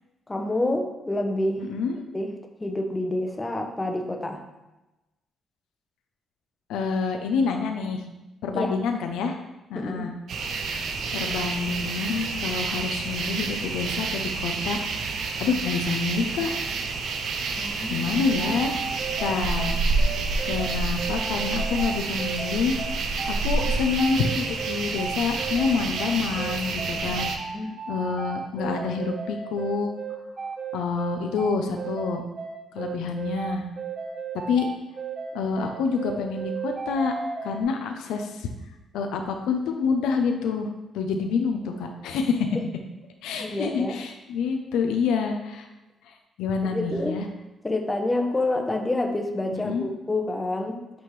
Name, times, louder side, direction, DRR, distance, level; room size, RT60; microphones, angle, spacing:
voice 1, 0.3-1.7 2.1-2.3 2.6-4.4 8.5-8.7 9.8-10.1 17.6-18.0 27.5-27.7 43.4-44.0 46.6-47.2 47.6-50.8, left 2 dB, 15° left, 4 dB, 0.8 m, -27 dB
voice 2, 1.6-2.0 6.7-8.0 8.4-9.4 9.7-10.1 11.1-14.8 15.4-16.5 17.9-18.8 19.2-19.8 20.5-22.8 23.3-27.3 27.9-29.9 30.7-32.2 32.7-33.6 34.5-34.7 35.3-37.1 37.4-38.5 38.9-40.7 40.9-42.6 43.2-45.7 46.1-47.3 49.5-49.8, left 5 dB, 90° left, 4 dB, 0.5 m, -27 dB
sound 1, 10.3-27.4, right 4 dB, 70° right, 0.6 m, -29 dB
sound 2, 18.2-37.6, right 5 dB, 35° right, 0.9 m, -34 dB
8.2 x 3.6 x 3.2 m, 1.0 s
cardioid pair, 90°, 0 cm